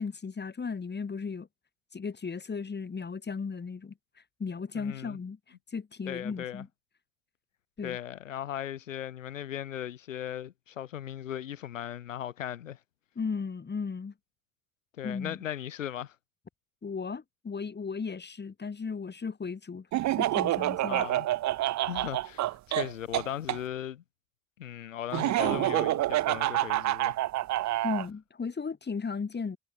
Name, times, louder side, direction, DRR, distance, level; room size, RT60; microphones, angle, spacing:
voice 1, 0.0-1.5 1.9-3.9 4.4-5.4 5.7-6.7 7.8-8.0 13.1-14.1 15.0-15.4 16.8-19.9 20.2-21.0 21.8-21.9 27.8-29.6, left 5 dB, 25° left, 3.3 m, -35 dB
voice 2, 4.7-5.2 6.1-6.6 7.8-12.8 15.0-16.2 20.9-21.3 21.9-24.0 24.6-27.2 27.6-27.8, left 10 dB, 80° left, 2.0 m, -37 dB
Laughter, 19.9-23.6 25.1-28.1, right 15 dB, 45° right, 1.0 m, -28 dB
figure-of-eight pair, 45°, 38 cm